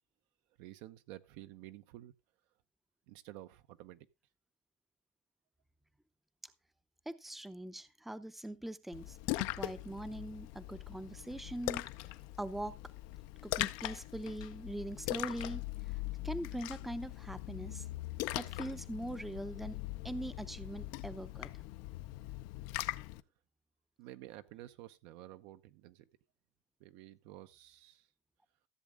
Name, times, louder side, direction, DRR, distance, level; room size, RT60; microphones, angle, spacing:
voice 1, 0.6-2.1 3.1-4.1 24.0-26.1 26.8-28.1, right 15 dB, 70° right, 0.8 m, -51 dB
voice 2, 7.1-11.9 12.4-12.7 13.4-16.0 16.2-17.9 18.3-21.5, right 1 dB, 5° right, 0.6 m, -42 dB
Splash splatter, 8.9-23.2, left 17 dB, 70° left, 0.6 m, -41 dB
14.0 x 7.4 x 3.6 m
supercardioid pair, 135°, 6 cm